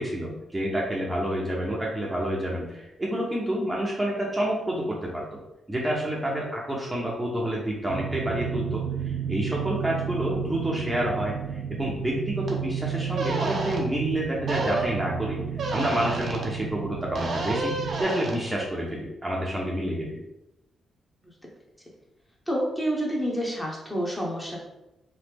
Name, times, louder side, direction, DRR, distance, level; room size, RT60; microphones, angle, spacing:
voice 1, 0.0-5.2 5.7-15.4 15.7-20.2, right 1 dB, 20° right, -4 dB, 0.7 m, -28 dB
sound 1, 7.9-18.0, right 8 dB, 85° right, 0.4 m, -32 dB
sound 2, 12.5-12.6 13.1-13.8 14.5-14.9 15.6-16.5 17.1-18.4, right 2 dB, 60° right, 0.7 m, -30 dB
voice 2, 22.5-24.6, equal, 10° left, -3 dB, 1.0 m, -28 dB
3.1 x 2.0 x 3.4 m, 0.92 s
supercardioid pair, 60°, 0 cm